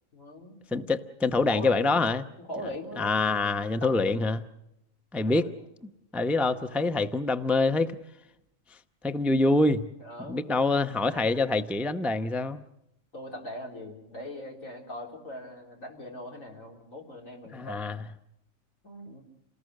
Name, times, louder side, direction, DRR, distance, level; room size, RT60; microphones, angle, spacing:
voice 1, 0.1-0.9 1.5-2.1 2.4-4.2 5.1-5.6 10.0-10.6 11.0-11.4 13.1-17.9 18.8-19.2, left 1 dB, 80° left, 0 dB, 4.3 m, -41 dB
voice 2, 0.7-2.2 3.0-4.4 5.1-5.5 6.1-8.0 9.0-9.9 10.3-12.6 17.5-18.0, left 3 dB, ahead, 10 dB, 0.5 m, -25 dB
28.0 x 19.5 x 6.6 m, 0.83 s
omnidirectional pair, 1.4 m